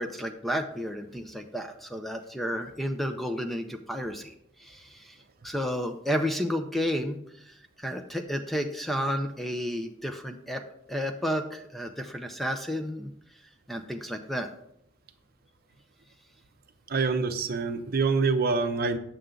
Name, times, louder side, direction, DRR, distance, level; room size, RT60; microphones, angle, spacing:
voice 1, 0.0-4.3 4.6-5.1 5.4-7.2 7.8-10.6 10.9-13.1 13.7-14.5, equal, ahead, 5 dB, 0.5 m, -31 dB
voice 2, 16.9-19.0, right 4 dB, 50° right, 8 dB, 0.7 m, -26 dB
9.1 x 6.8 x 3.8 m, 0.75 s
head